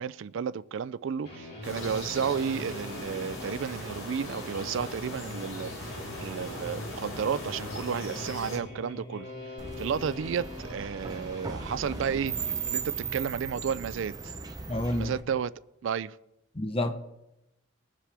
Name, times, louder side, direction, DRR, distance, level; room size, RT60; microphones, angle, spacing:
voice 1, 0.0-9.3 9.8-12.3 12.7-14.3 14.9-15.5 15.8-16.2, right 7 dB, 65° right, 0.4 m, -32 dB
sound 1, 1.2-13.2, left 2 dB, 50° left, 3.2 m, -44 dB
sound 2, 1.6-8.6, left 1 dB, 80° left, 3.9 m, -39 dB
sound 3, 9.6-15.2, right 5 dB, 20° right, 0.7 m, -37 dB
voice 2, 14.7-15.1 16.5-16.9, left 1 dB, 30° left, 0.8 m, -29 dB
21.0 x 7.5 x 3.4 m
head